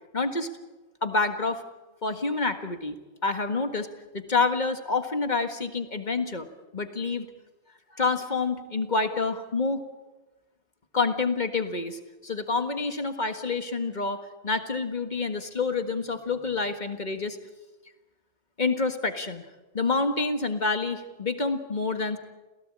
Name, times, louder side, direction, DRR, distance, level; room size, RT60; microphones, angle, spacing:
voice 1, 0.1-0.5 1.0-1.6 2.0-3.0 3.2-3.9 4.1-6.5 6.7-7.3 7.9-9.8 10.9-17.4 18.6-19.4 19.7-22.2, left 3 dB, 45° left, 8 dB, 1.8 m, -28 dB
28.0 x 17.0 x 8.7 m, 1.1 s
omnidirectional pair, 1.0 m